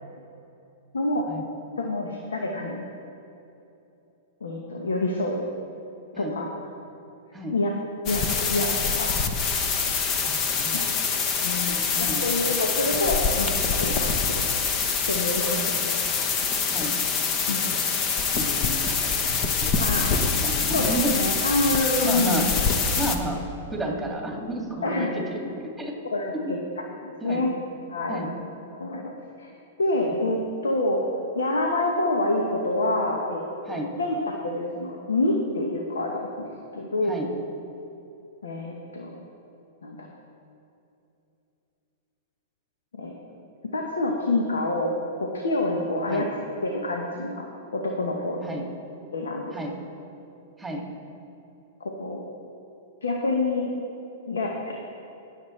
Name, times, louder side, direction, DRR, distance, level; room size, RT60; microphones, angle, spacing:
voice 1, 0.9-1.2 1.8-2.8 4.4-5.4 6.2-6.4 7.5-7.7 8.1-9.2 10.7-10.8 11.4-14.4 15.1-15.6 17.5-17.8 19.8-20.1 20.7-22.4 24.8-25.1 26.1-26.6 27.0-27.5 27.9-28.2 28.7-29.5 29.8-30.4 30.6-33.4 33.7-36.5 36.7-37.2 38.4-39.2 39.8-40.1 42.9-43.1 43.7-47.5 47.7-48.6 49.1-49.5 51.8-52.2 53.0-53.7 54.3-54.7, left 2 dB, 90° left, 1 dB, 1.1 m, -27 dB
sound 1, 8.1-23.2, left 5 dB, 40° left, 1.0 m, -25 dB
voice 2, 10.2-10.9 11.9-12.2 15.4-15.8 16.7-16.9 17.5-17.6 18.3-19.1 19.4-21.2 22.0-22.5 23.0-23.4 23.7-25.9 26.3-26.5 27.2-27.4 28.1-28.3 30.0-30.1 33.7-33.9 37.1-37.3 46.1-46.2 48.4-48.6 49.5-49.7 50.6-50.8, right 1 dB, 5° right, -1 dB, 2.3 m, -32 dB
19.5 x 7.2 x 3.3 m, 2.9 s
hypercardioid pair, 115°, 0 cm